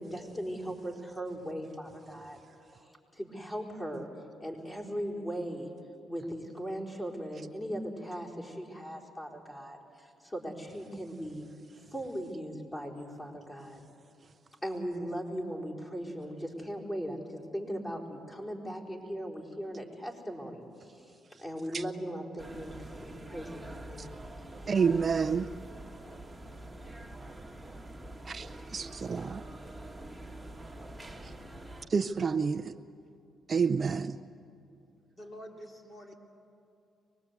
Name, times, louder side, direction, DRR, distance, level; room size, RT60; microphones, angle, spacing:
voice 1, 0.0-2.4 3.1-4.1 4.4-5.7 6.1-11.4 11.9-13.8 14.6-24.1 24.6-24.7 25.3-25.4, equal, 15° left, -1 dB, 4.5 m, -38 dB
sound 1, 22.4-31.9, right 1 dB, 5° right, 1.9 m, -45 dB
voice 2, 24.7-25.5 28.3-29.4 31.2-31.3 31.9-32.7 33.5-34.2, right 5 dB, 40° right, 9 dB, 0.6 m, -29 dB
voice 3, 35.2-36.2, equal, 35° left, 0 dB, 3.4 m, -47 dB
24.5 x 20.5 x 8.3 m, 2.8 s
cardioid pair, 90°, 0 cm